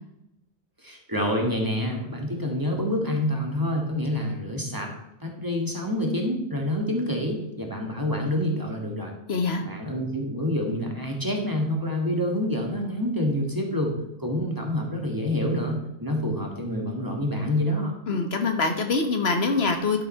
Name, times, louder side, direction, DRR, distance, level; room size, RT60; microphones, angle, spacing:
voice 1, 0.8-4.9 5.2-9.1 9.6-17.9, left 1 dB, 20° right, 1 dB, 2.1 m, -27 dB
voice 2, 9.3-9.6 18.1-20.0, left 4 dB, 80° left, 5 dB, 1.6 m, -24 dB
12.0 x 5.5 x 5.7 m, 0.84 s
omnidirectional pair, 1.0 m